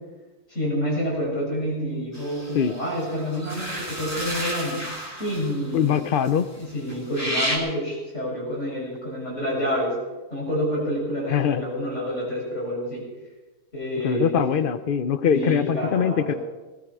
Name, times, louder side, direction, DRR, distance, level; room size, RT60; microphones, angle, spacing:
voice 1, 0.5-4.8 5.2-5.9 6.6-10.0 10.3-13.0 13.7-14.6 15.3-16.4, equal, 50° left, -5 dB, 7.2 m, -28 dB
sound 1, 2.1-6.6 6.9-7.6, equal, 10° left, 2.4 m, -32 dB
voice 2, 5.7-6.4 11.3-11.6 14.0-16.3, left 8 dB, 65° left, 12 dB, 0.5 m, -22 dB
18.5 x 13.0 x 4.8 m, 1.2 s
omnidirectional pair, 1.7 m